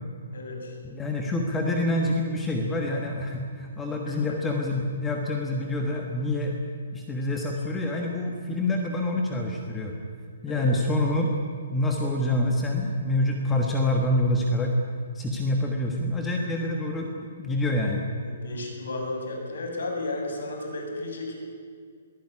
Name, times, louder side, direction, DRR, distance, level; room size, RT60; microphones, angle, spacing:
voice 1, 0.3-0.8 10.5-10.7 16.4-16.5 18.2-21.3, left 2 dB, 75° left, 2 dB, 7.2 m, -33 dB
voice 2, 0.8-6.6 6.9-9.9 10.4-11.3 11.7-14.7 15.1-18.0, left 1 dB, 5° left, 1 dB, 1.4 m, -26 dB
22.5 x 15.5 x 9.8 m, 2.2 s
hypercardioid pair, 175°, 0 cm